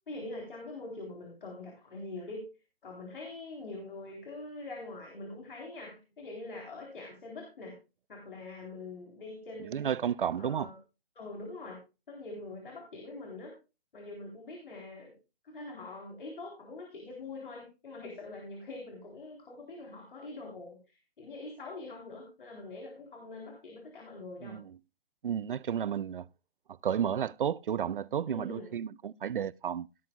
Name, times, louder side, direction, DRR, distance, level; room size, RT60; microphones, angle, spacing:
voice 1, 0.1-2.4 2.8-7.8 8.1-9.9 10.3-10.8 11.2-11.8 12.1-13.5 13.9-15.1 15.4-24.6 28.3-28.7, left 2 dB, 60° left, 3.7 m, -44 dB
voice 2, 9.7-10.7 24.4-24.7 25.2-26.3 26.8-29.9, right 8 dB, 60° right, 0.5 m, -32 dB
17.5 x 10.5 x 2.3 m
figure-of-eight pair, 130°, 30 cm